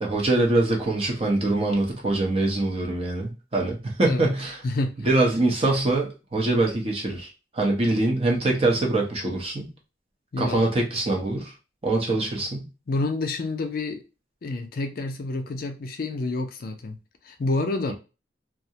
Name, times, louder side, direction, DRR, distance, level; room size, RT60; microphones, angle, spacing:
voice 1, 0.0-4.6 5.0-9.7 10.4-11.5 11.8-12.7, right 2 dB, 35° right, 0.6 m, -24 dB
voice 2, 4.0-4.3 4.6-5.1 10.3-10.7 12.9-14.0 14.4-17.0 17.2-17.9, left 2 dB, 55° left, 0.4 m, -28 dB
2.3 x 2.0 x 2.7 m
head